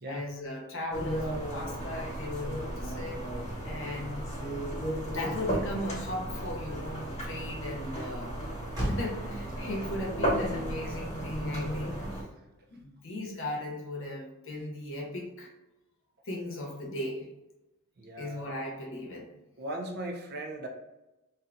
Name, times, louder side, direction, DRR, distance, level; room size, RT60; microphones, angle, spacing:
voice 1, 0.0-3.2 3.6-4.3 5.0-8.4 8.7-12.3 12.7-15.5 16.2-17.3 18.2-19.3, left 1 dB, 60° left, -1 dB, 0.8 m, -37 dB
sound 1, 0.9-12.2, right 1 dB, 30° left, 1.1 m, -34 dB
Motor vehicle (road), 8.7-13.3, equal, 20° right, 0.8 m, -43 dB
voice 2, 18.0-18.6 19.6-20.7, right 1 dB, 45° right, 2 dB, 0.5 m, -38 dB
2.7 x 2.3 x 3.7 m, 1.0 s
head